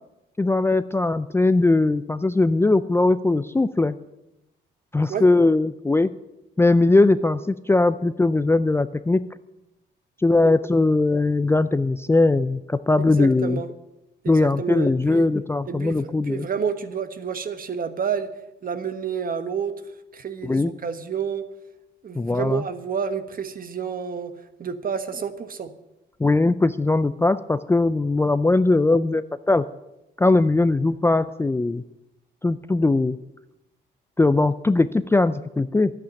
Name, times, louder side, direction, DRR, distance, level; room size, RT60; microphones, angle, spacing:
voice 1, 0.4-4.0 4.9-6.1 6.6-9.2 10.2-13.6 14.3-16.5 20.4-20.7 22.2-22.6 26.2-29.6 30.2-31.8 32.4-33.2 34.2-35.9, left 2 dB, 10° left, 13 dB, 0.4 m, -20 dB
voice 2, 13.0-13.7 14.2-15.3 15.7-18.3 18.6-19.7 20.1-21.5 22.0-24.3 24.6-25.7, right 7 dB, 45° right, 10 dB, 1.2 m, -29 dB
11.5 x 8.5 x 8.9 m, 0.92 s
cardioid pair, 90°, 20 cm